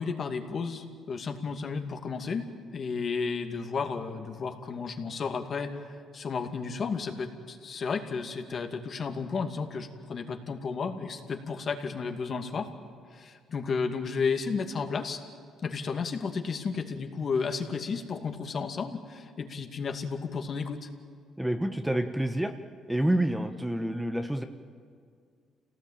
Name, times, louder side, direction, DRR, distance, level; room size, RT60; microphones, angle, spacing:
voice 1, 0.0-5.8 6.1-12.7 13.1-15.2 15.6-20.9, left 5 dB, 45° left, 5 dB, 2.3 m, -33 dB
voice 2, 21.4-22.5 22.9-24.4, right 1 dB, 5° right, 7 dB, 1.3 m, -28 dB
27.5 x 18.0 x 9.0 m, 2.2 s
cardioid pair, 90°, 0 cm